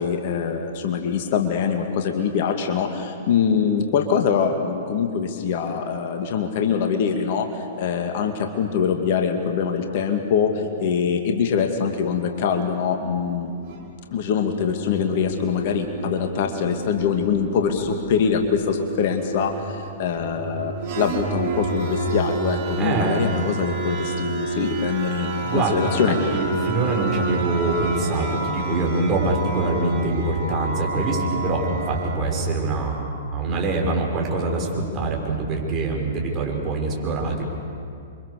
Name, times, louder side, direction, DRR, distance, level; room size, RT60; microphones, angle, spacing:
voice 1, 0.0-13.5 14.1-26.3, left 6 dB, 45° left, 5 dB, 2.3 m, -23 dB
sound 1, 13.1-13.9 14.4-32.2, right 3 dB, 45° right, 3.9 m, -30 dB
voice 2, 22.8-23.3 25.4-25.9 26.3-37.4, right 3 dB, 25° right, 0 dB, 6.1 m, -24 dB
29.5 x 24.5 x 6.9 m, 2.5 s
figure-of-eight pair, 110°, 0 cm